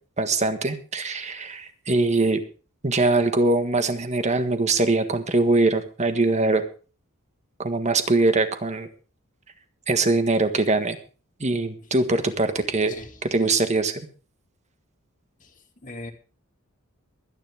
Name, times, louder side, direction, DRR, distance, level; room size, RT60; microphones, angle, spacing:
voice 1, 0.2-2.4 2.8-6.6 7.6-8.9 9.9-11.0 11.4-12.9 13.2-14.1, right 2 dB, 35° right, 8 dB, 1.6 m, -22 dB
voice 2, 12.9-13.2 15.4-16.1, left 2 dB, 40° left, 4 dB, 2.4 m, -41 dB
23.0 x 9.9 x 3.6 m, 0.37 s
head